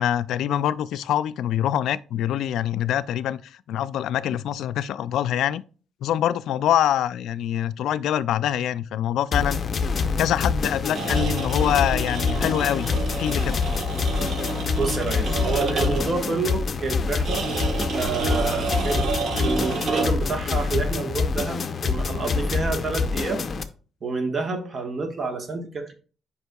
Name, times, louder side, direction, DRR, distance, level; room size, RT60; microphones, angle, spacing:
voice 1, 0.0-5.6 6.0-9.6 10.2-12.9 13.2-13.6, left 11 dB, 80° left, 0.3 m, -25 dB
sound 1, 9.3-23.6, left 5 dB, 40° left, 0.6 m, -26 dB
sound 2, 10.9-16.2 17.3-20.3, right 4 dB, 60° right, 1.2 m, -29 dB
voice 2, 14.7-17.5 17.9-19.1 19.4-23.5 24.0-25.9, right 3 dB, 40° right, 1.3 m, -28 dB
8.0 x 5.2 x 2.3 m
cardioid pair, 90°, 0 cm